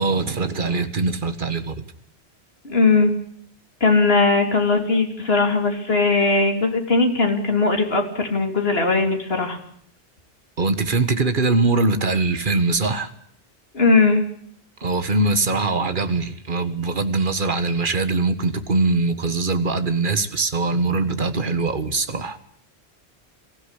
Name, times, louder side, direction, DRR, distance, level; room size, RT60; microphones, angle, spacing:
voice 1, 0.0-1.8 10.6-13.1 14.8-22.4, right 3 dB, 50° right, 10 dB, 1.7 m, -22 dB
voice 2, 2.6-3.1 3.8-9.6 13.7-14.2, left 3 dB, 60° left, 4 dB, 3.4 m, -19 dB
22.5 x 15.5 x 9.9 m, 0.63 s
omnidirectional pair, 1.1 m